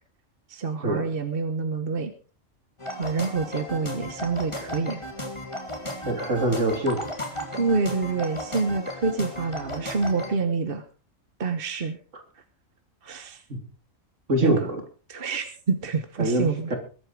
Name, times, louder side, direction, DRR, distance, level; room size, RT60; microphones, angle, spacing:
voice 1, 0.5-2.1 3.0-5.0 7.5-10.8 11.4-12.0 13.0-13.4 14.4-14.7 15.1-16.7, right 4 dB, 45° right, 9 dB, 1.3 m, -27 dB
sound 1, 2.8-10.4, equal, 20° left, 2.6 m, -35 dB
voice 2, 6.0-7.0 13.5-13.6 14.3-14.8 16.2-16.8, right 1 dB, 65° right, 4 dB, 3.4 m, -24 dB
21.5 x 8.8 x 4.7 m, 0.38 s
omnidirectional pair, 1.4 m